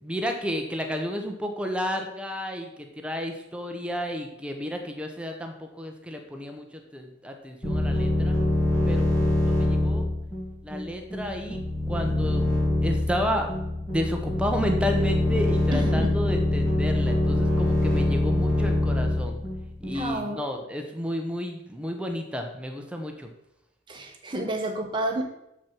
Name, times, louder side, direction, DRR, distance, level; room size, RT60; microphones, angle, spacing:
voice 1, 0.0-8.4 8.9-10.1 10.6-11.6 11.9-12.5 12.8-13.5 13.9-19.4 19.8-23.3, equal, 5° right, 4 dB, 0.8 m, -32 dB
sound 1, 7.6-20.1, left 1 dB, 15° left, 2.8 m, -24 dB
voice 2, 15.7-16.1 19.9-20.4 23.9-25.2, right 1 dB, 25° right, 2 dB, 1.3 m, -30 dB
7.2 x 5.9 x 6.0 m, 0.85 s
head